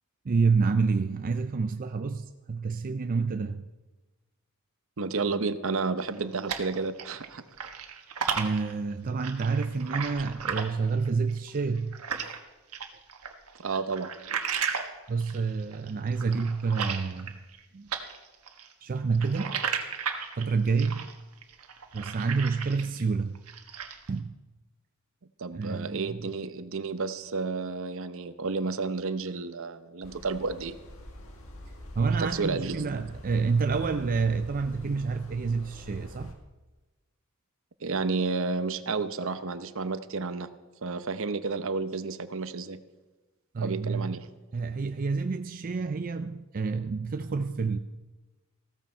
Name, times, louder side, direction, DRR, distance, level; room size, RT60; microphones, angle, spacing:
voice 1, 0.2-3.6 8.3-12.3 15.1-17.4 17.7-17.9 18.8-19.6 20.4-21.1 21.9-23.4 24.1-24.3 25.5-26.2 32.0-36.4 43.5-44.2 44.5-47.8, right 4 dB, 40° right, 8 dB, 0.4 m, -28 dB
voice 2, 5.0-7.4 13.6-14.1 25.4-30.8 32.2-32.8 37.8-40.5 40.8-42.8 43.6-44.2, right 4 dB, 65° right, 12 dB, 0.8 m, -31 dB
sound 1, 6.0-7.3 7.5-12.4 12.7-17.6 17.9-23.0 23.3-24.1, right 6 dB, 90° right, 1.3 m, -34 dB
sound 2, 30.0-36.3, left 1 dB, 65° left, 1.9 m, -46 dB
15.5 x 14.0 x 4.4 m, 1.2 s
head